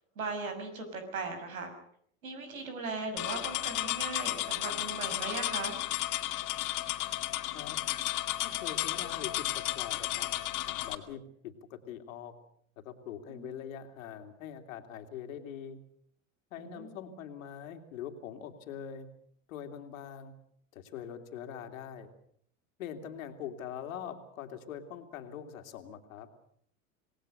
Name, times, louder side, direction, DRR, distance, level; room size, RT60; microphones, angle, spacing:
voice 1, 0.2-1.7 2.2-5.8 13.3-13.5 16.6-17.0, right 3 dB, 85° right, 7 dB, 6.3 m, -38 dB
sound 1, 3.2-10.9, left 16 dB, 50° left, 2.4 m, -33 dB
voice 2, 8.4-10.3 10.8-12.3 12.8-15.8 16.5-19.1 19.5-20.3 20.7-22.1 22.8-26.3, left 8 dB, 70° left, 6 dB, 3.1 m, -43 dB
27.0 x 19.0 x 6.7 m, 0.66 s
hypercardioid pair, 85°, 41 cm